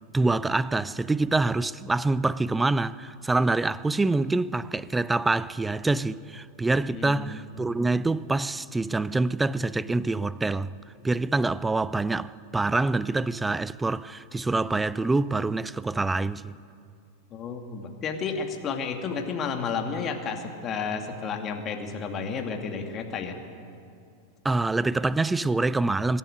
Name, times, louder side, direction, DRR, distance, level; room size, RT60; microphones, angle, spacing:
voice 1, 0.1-10.7 11.0-16.6 24.4-26.2, right 3 dB, 10° right, 0.4 m, -26 dB
voice 2, 6.9-7.4 17.3-23.4, left 5 dB, 30° left, 2.2 m, -32 dB
24.5 x 11.0 x 9.7 m
figure-of-eight pair, 90°, 0 cm